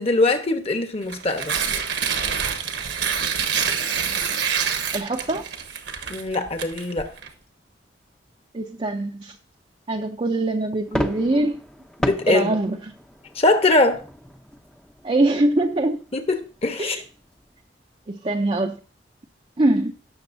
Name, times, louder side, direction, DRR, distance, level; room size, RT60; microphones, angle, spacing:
voice 1, 0.0-1.6 6.1-7.1 12.0-12.6 13.3-14.0 16.1-17.0, left 2 dB, 35° left, 1.1 m, -22 dB
Tearing, 1.0-7.3, right 7 dB, 70° right, 1.3 m, -26 dB
voice 2, 4.9-5.4 8.5-9.4 9.9-11.6 12.3-12.9 15.0-16.0 16.8-17.0 18.1-18.8 19.6-19.9, right 2 dB, 30° right, 0.6 m, -23 dB
sound 1, 10.9-17.6, equal, 5° left, 0.7 m, -34 dB
17.5 x 6.5 x 2.7 m
head